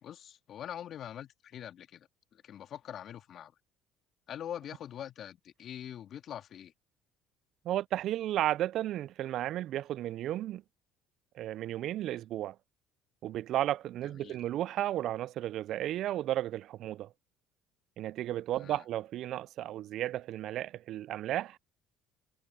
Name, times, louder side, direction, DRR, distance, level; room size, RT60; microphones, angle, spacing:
voice 1, 0.0-3.6 4.3-6.7 14.1-14.4 18.5-18.8, left 10 dB, 55° left, 2.0 m, -44 dB
voice 2, 7.6-10.6 11.4-12.6 13.2-17.1 18.0-21.6, right 13 dB, 60° right, 0.5 m, -33 dB
hypercardioid pair, 70°, 0 cm